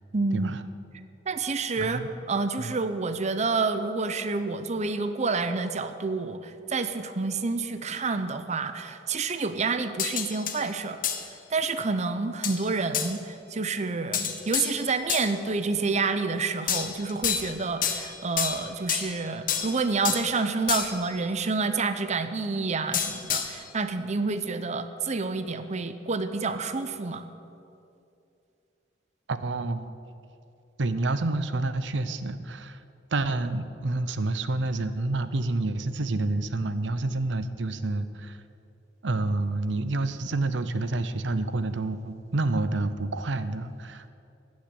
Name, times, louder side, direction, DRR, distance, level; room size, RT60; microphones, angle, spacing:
voice 1, 0.1-0.6 1.3-2.0 2.3-11.0 11.2-27.2, right 4 dB, 40° right, 10 dB, 0.7 m, -28 dB
voice 2, 1.8-2.1 2.6-2.7 29.3-29.9 30.8-32.8 33.1-38.4 39.0-44.1, right 2 dB, 80° right, 12 dB, 0.7 m, -28 dB
sound 1, 10.0-10.6 11.0-11.3 12.4-12.6 12.9-13.1 14.1-15.3 16.7-17.5 17.8-19.1 19.5-20.3 20.7-21.1 22.9-23.6, left 8 dB, 50° left, 1.3 m, -29 dB
15.0 x 6.4 x 10.0 m, 2.6 s
head